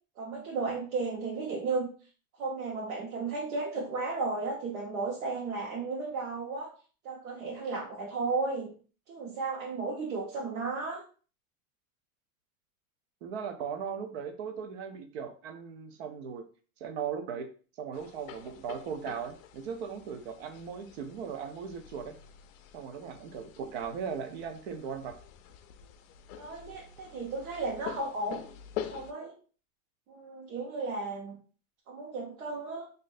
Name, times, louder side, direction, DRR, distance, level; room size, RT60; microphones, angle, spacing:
voice 1, 0.2-1.9 2.4-6.7 7.0-8.7 9.1-11.0 26.4-28.5 28.9-29.3 30.1-31.4 31.9-32.9, right 3 dB, 70° right, -3 dB, 1.1 m, -34 dB
voice 2, 13.2-16.5 16.8-17.5 17.8-22.2 22.7-25.2, right 7 dB, 50° right, 7 dB, 0.5 m, -38 dB
sound 1, 17.9-29.1, left 10 dB, 65° left, 0.5 m, -46 dB
3.9 x 2.6 x 2.5 m, 0.39 s
supercardioid pair, 175°, 42 cm